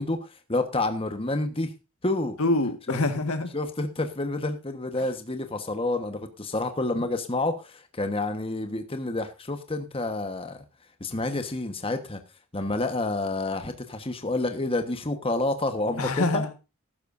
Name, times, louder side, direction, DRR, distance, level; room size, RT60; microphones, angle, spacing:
voice 1, 0.0-1.7 2.0-2.4 2.9-3.0 3.5-10.6 11.0-12.2 12.5-16.4, left 2 dB, 25° left, 1.3 m, -29 dB
voice 2, 2.4-3.5 5.0-5.1 6.9-7.1 16.0-16.5, left 2 dB, 75° left, 1.7 m, -26 dB
14.5 x 12.5 x 2.6 m
head